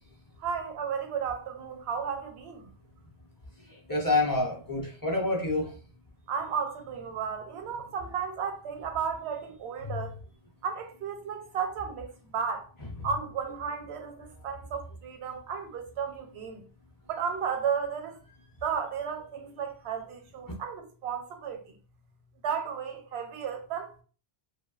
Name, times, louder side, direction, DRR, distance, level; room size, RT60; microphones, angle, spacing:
voice 1, 0.4-2.7 6.3-10.2 10.6-12.7 13.0-16.6 17.1-18.2 18.6-21.6 22.4-24.0, right 6 dB, 85° right, 0.8 m, -34 dB
voice 2, 3.7-5.8 9.8-10.0, left 2 dB, 30° left, 0.4 m, -28 dB
2.6 x 2.2 x 2.3 m
omnidirectional pair, 1.1 m